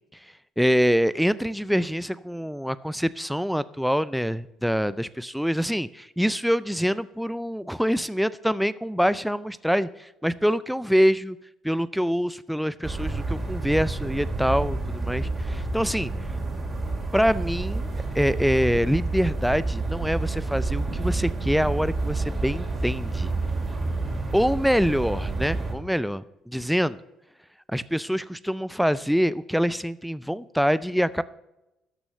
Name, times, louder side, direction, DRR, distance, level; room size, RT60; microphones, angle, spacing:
voice 1, 0.6-11.4 11.6-16.1 17.1-17.9 18.2-23.3 24.3-27.0 27.7-31.2, equal, ahead, 16 dB, 0.4 m, -25 dB
sound 1, 12.8-25.7, right 3 dB, 30° right, 2.9 m, -29 dB
13.0 x 6.1 x 6.7 m, 0.91 s
cardioid pair, 100°, 0 cm